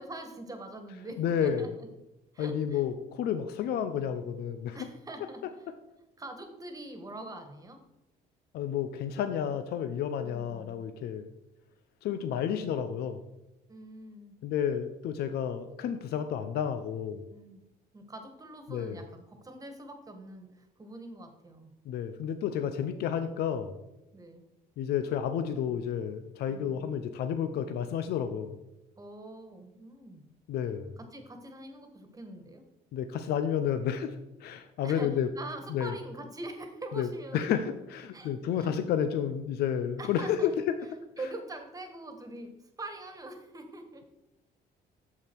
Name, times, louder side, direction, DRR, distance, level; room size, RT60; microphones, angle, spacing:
voice 1, 0.0-1.9 2.3-2.8 4.7-5.7 6.2-7.8 10.2-10.9 13.7-14.3 17.1-17.6 17.9-21.7 22.7-22.9 24.1-24.5 26.5-26.9 29.0-30.3 31.0-32.6 34.8-35.1 35.3-37.4 38.1-38.7 40.0-40.5 41.2-42.5 42.8-44.0, right 2 dB, 20° right, 6 dB, 1.5 m, -44 dB
voice 2, 1.2-1.7 2.4-4.8 8.5-11.3 12.0-13.2 14.4-17.2 18.7-19.0 21.9-23.8 24.8-28.6 30.5-30.9 32.9-34.1 34.4-35.3 35.7-35.9 36.9-37.1 37.3-40.7, left 8 dB, 70° left, 9 dB, 0.7 m, -31 dB
8.5 x 7.1 x 4.6 m, 0.93 s
cardioid pair, 110°, 17 cm